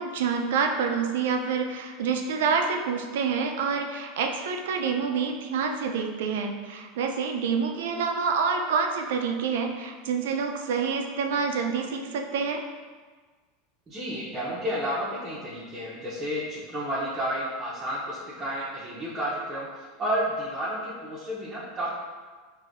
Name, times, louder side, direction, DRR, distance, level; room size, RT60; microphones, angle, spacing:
voice 1, 0.0-12.6, right 5 dB, 85° right, 4 dB, 0.4 m, -27 dB
voice 2, 13.9-21.9, equal, 15° right, -8 dB, 0.7 m, -31 dB
4.9 x 2.6 x 2.5 m, 1.4 s
supercardioid pair, 150°, 0 cm